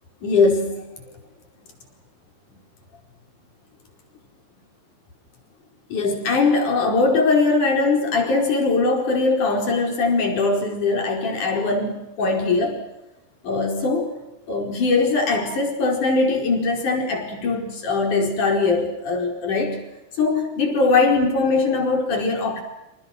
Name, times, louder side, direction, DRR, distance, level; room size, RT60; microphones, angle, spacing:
voice 1, 0.2-0.9 5.9-12.8 13.4-14.1 14.5-19.8 20.2-22.6, left 3 dB, 50° left, 2 dB, 6.1 m, -21 dB
28.5 x 27.5 x 6.2 m, 0.94 s
omnidirectional pair, 4.7 m